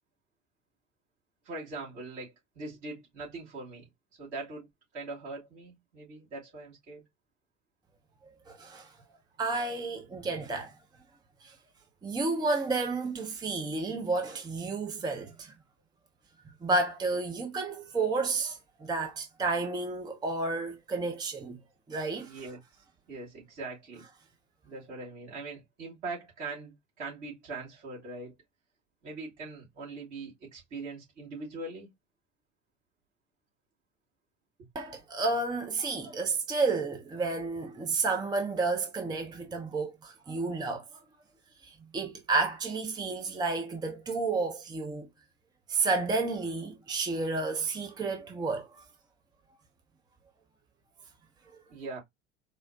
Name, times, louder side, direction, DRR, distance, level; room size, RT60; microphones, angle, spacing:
voice 1, 1.4-3.9 4.2-4.7 4.9-7.0 22.2-22.6 23.1-24.0 24.6-28.3 29.0-31.9 51.7-52.0, right 3 dB, 65° right, 2.8 m, -41 dB
voice 2, 8.5-8.9 9.4-10.7 11.4-11.5 12.0-15.5 16.6-21.6 21.9-22.4 34.7-40.8 41.6-45.1 45.7-48.8, right 3 dB, 10° right, 0.6 m, -31 dB
4.7 x 2.0 x 2.6 m
figure-of-eight pair, 70°, 36 cm